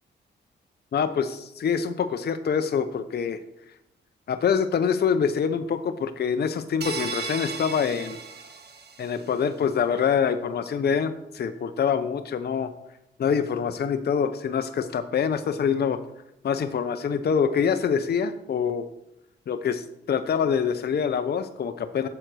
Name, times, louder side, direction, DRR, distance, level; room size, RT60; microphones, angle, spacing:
voice 1, 0.9-3.4 4.3-8.2 9.0-12.7 13.2-16.0 16.4-18.9 19.5-22.1, left 7 dB, 55° left, 9 dB, 0.7 m, -25 dB
sound 1, 6.8-9.3, right 5 dB, 55° right, 1.5 m, -35 dB
7.9 x 7.6 x 6.2 m, 0.85 s
cardioid pair, 70°, 20 cm